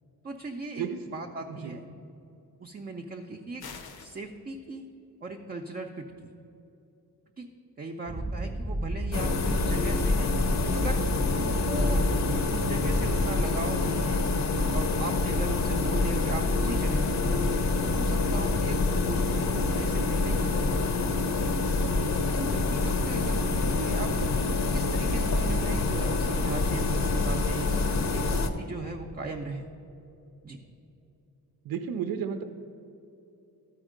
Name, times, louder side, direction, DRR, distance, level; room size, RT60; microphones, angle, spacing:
voice 1, 0.2-1.8 2.6-3.6 4.0-4.8 5.2-6.3 7.4-7.5 7.8-10.3 10.7-11.0 11.3-12.1 12.5-14.2 14.7-17.4 17.8-21.0 21.8-21.9 22.3-24.1 24.7-27.7 28.1-29.7 30.4-30.6, right 3 dB, 25° right, 1 dB, 0.5 m, -38 dB
sound 1, 3.6-4.2, left 5 dB, 85° left, 0.9 m, -43 dB
sound 2, 8.1-13.3, right 1 dB, 10° right, 0.8 m, -33 dB
sound 3, 9.1-28.5, left 3 dB, 45° left, 0.7 m, -26 dB
voice 2, 31.6-32.4, right 7 dB, 70° right, 6 dB, 0.5 m, -32 dB
13.0 x 4.4 x 5.0 m, 2.9 s
wide cardioid pair, 130°, 36 cm